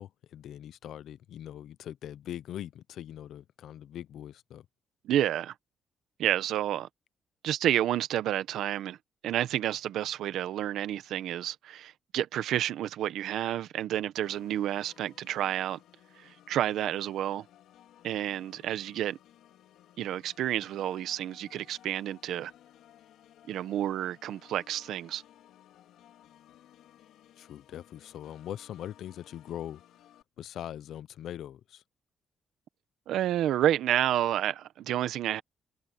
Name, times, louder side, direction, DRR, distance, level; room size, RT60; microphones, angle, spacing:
voice 1, 0.0-4.7 27.4-29.8 30.4-31.8, left 11 dB, 65° left, 0.6 m, -41 dB
voice 2, 5.0-5.5 6.2-6.9 7.4-9.0 9.2-15.8 16.2-17.5 18.0-19.2 20.0-22.5 23.5-25.2 33.1-35.4, right 12 dB, 75° right, 1.0 m, -30 dB
Organ, 14.2-30.2, left 11 dB, 90° left, 3.7 m, -58 dB
cardioid pair, 165°, 0 cm